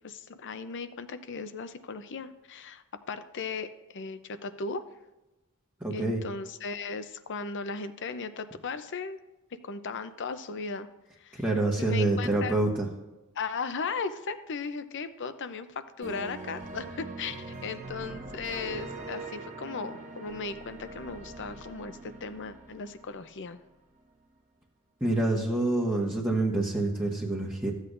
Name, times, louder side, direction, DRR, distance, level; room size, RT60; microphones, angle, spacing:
voice 1, 0.0-4.8 5.9-9.2 9.6-10.9 11.2-11.4 11.8-12.6 13.3-23.6, left 4 dB, 55° left, 11 dB, 0.6 m, -37 dB
voice 2, 5.8-6.2 11.3-12.9 25.0-27.7, right 2 dB, 10° right, -3 dB, 1.1 m, -27 dB
sound 1, 16.0-23.6, right 3 dB, 35° right, 1.1 m, -42 dB
14.5 x 8.1 x 2.6 m, 1.0 s
head